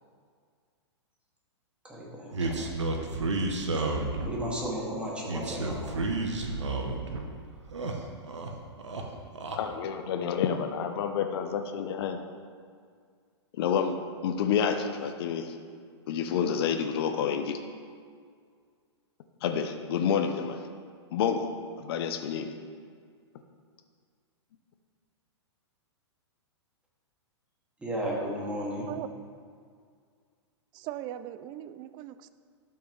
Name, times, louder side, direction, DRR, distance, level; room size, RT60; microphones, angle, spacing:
voice 1, 1.8-2.8 3.7-3.8 4.2-6.1 27.8-28.9, equal, 5° right, -4 dB, 2.1 m, -34 dB
sound 1, 2.3-4.5 5.3-7.2 7.6-8.5 8.8-9.6, right 2 dB, 85° right, 1.0 m, -31 dB
voice 2, 9.6-12.2 13.6-14.0 14.2-15.5 16.1-17.6 19.4-20.7 21.1-21.5 21.8-22.5, left 7 dB, 60° left, 7 dB, 0.7 m, -29 dB
voice 3, 30.7-32.3, right 13 dB, 30° right, 13 dB, 0.4 m, -39 dB
12.5 x 5.7 x 3.2 m, 2.1 s
hypercardioid pair, 120°, 15 cm